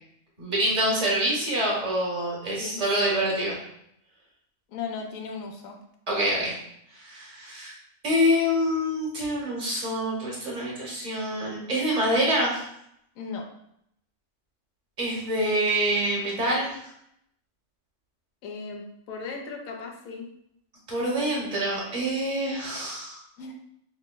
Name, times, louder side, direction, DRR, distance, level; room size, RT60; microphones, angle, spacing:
voice 1, 0.4-3.5 6.1-6.5 6.9-7.7 8.0-12.6 15.0-16.7 20.9-23.2, equal, 35° right, -4 dB, 1.1 m, -26 dB
voice 2, 4.7-5.8 13.2-13.4 18.4-20.3 23.4-23.5, left 5 dB, 80° left, 1 dB, 1.1 m, -36 dB
6.3 x 2.1 x 2.2 m, 0.76 s
omnidirectional pair, 1.4 m